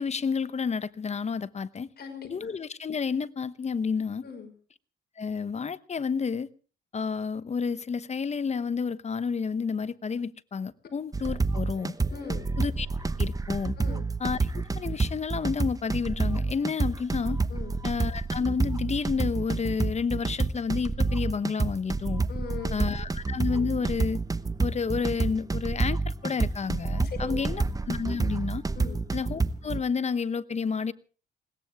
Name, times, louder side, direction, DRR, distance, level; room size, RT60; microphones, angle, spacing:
voice 1, 0.0-1.9 2.3-4.2 5.2-6.5 6.9-11.9 12.6-12.9 13.2-13.8 14.2-17.4 17.8-22.2 22.7-24.2 24.6-28.6 29.1-30.9, left 5 dB, 35° left, 0.9 m, -30 dB
voice 2, 2.0-2.5 4.2-4.5 12.1-12.5 13.8-14.1 17.5-17.8 22.3-23.0 27.0-27.6 28.8-29.0, left 5 dB, 55° left, 5.4 m, -40 dB
sound 1, 11.1-29.8, right 3 dB, 20° right, 1.0 m, -28 dB
21.0 x 18.5 x 3.6 m
cardioid pair, 90°, 20 cm